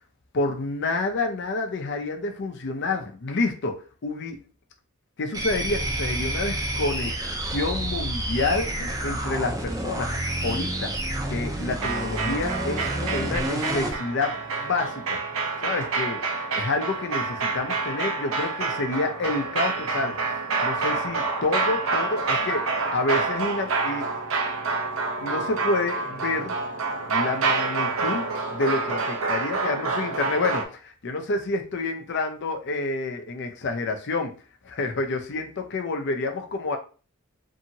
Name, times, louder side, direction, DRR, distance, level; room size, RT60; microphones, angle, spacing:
voice 1, 0.3-4.4 5.2-7.2 7.4-10.9 11.3-15.2 15.6-24.9 25.2-26.6 27.1-34.3 34.6-36.8, left 3 dB, 55° left, 0.5 m, -29 dB
sound 1, 5.3-14.0, right 1 dB, 15° right, 0.5 m, -29 dB
sound 2, 11.8-30.7, right 3 dB, 70° right, 0.6 m, -28 dB
2.8 x 2.7 x 2.7 m
head